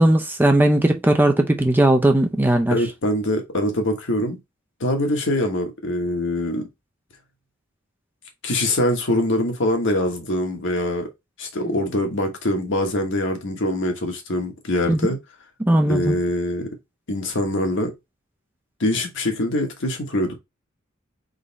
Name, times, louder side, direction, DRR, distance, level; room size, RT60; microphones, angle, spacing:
voice 1, 0.0-2.8 14.9-15.0 15.6-16.2, right 1 dB, 10° right, 0.5 m, -18 dB
voice 2, 2.7-4.4 4.8-6.7 8.4-11.1 11.4-15.2 15.9-16.7 17.1-17.9 18.8-20.4, left 1 dB, 60° left, 1.3 m, -23 dB
3.9 x 3.2 x 3.9 m
head